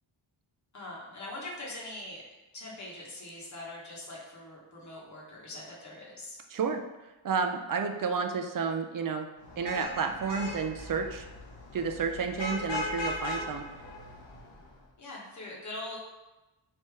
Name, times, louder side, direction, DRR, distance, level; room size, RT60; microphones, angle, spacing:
voice 1, 0.7-2.2 2.5-6.4 15.0-16.0, left 1 dB, 35° left, -4 dB, 1.1 m, -42 dB
voice 2, 6.5-6.8 7.2-9.3 9.6-11.3 11.7-13.6, right 5 dB, 45° right, 5 dB, 0.4 m, -31 dB
Vehicle horn car horn honking / Traffic noise roadway noise, 9.4-14.7, left 2 dB, 65° left, 0.9 m, -38 dB
3.3 x 2.8 x 4.5 m, 1.1 s
wide cardioid pair, 85°, 47 cm